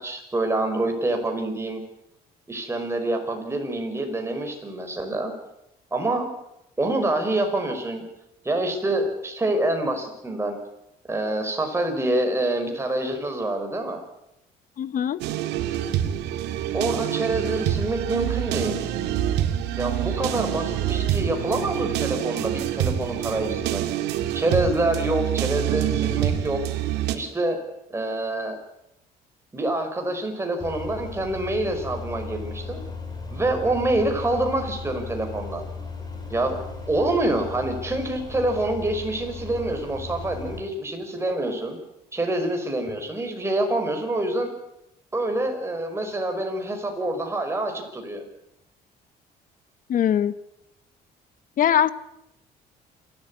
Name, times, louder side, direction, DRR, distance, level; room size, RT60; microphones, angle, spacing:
voice 1, 0.0-1.8 2.5-5.3 5.9-6.3 6.8-8.0 8.4-10.6 11.1-14.0 16.7-18.8 19.8-23.8 24.3-26.6 27.1-27.6 27.9-28.6 29.5-32.8 33.3-35.6 36.3-36.5 36.9-41.8 42.1-44.5 45.1-48.2, right 2 dB, 15° right, 4 dB, 5.4 m, -26 dB
voice 2, 14.8-15.2 49.9-50.3 51.6-51.9, left 9 dB, 55° left, 16 dB, 1.1 m, -21 dB
sound 1, 15.2-27.2, right 11 dB, 85° right, 2.0 m, -26 dB
sound 2, 30.6-40.6, left 4 dB, 25° left, 5.5 m, -36 dB
27.5 x 13.0 x 9.8 m, 0.87 s
cardioid pair, 110°, 17 cm